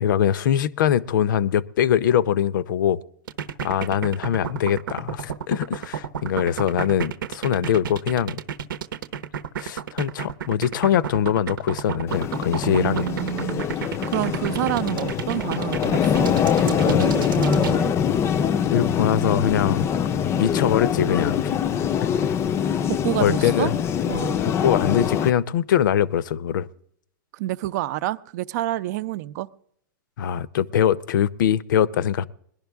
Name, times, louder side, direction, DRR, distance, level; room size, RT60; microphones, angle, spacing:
voice 1, 0.0-3.0 3.6-8.4 9.6-13.1 18.6-19.9 20.4-21.7 22.0-22.3 23.2-23.7 24.6-26.7 30.2-32.3, left 9 dB, 65° left, 0.7 m, -22 dB
sound 1, 3.3-17.8, right 8 dB, 80° right, 0.9 m, -31 dB
sound 2, 12.1-25.3, left 8 dB, 25° left, 0.5 m, -23 dB
voice 2, 12.6-17.9 22.9-23.7 24.1-24.4 27.3-29.5, right 15 dB, 55° right, 0.6 m, -28 dB
21.0 x 11.5 x 3.5 m
hypercardioid pair, 125°, 11 cm